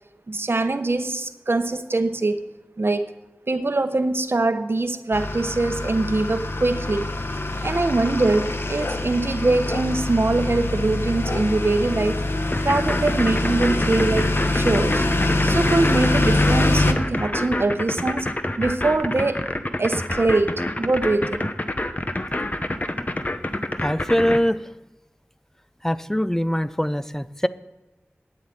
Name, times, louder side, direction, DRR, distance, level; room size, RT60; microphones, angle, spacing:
voice 1, 0.3-2.4 2.8-3.1 3.5-7.1 7.6-12.2 12.6-15.1 15.4-19.5 19.8-21.5, right 2 dB, 60° right, 9 dB, 0.9 m, -23 dB
sound 1, 5.1-16.9, left 2 dB, 60° left, 1.0 m, -24 dB
sound 2, 12.5-24.4, left 1 dB, 35° left, 0.9 m, -27 dB
voice 2, 23.8-24.6 25.8-27.5, equal, 10° left, 14 dB, 0.5 m, -22 dB
9.8 x 7.5 x 8.8 m, 1.1 s
wide cardioid pair, 45°, 4 cm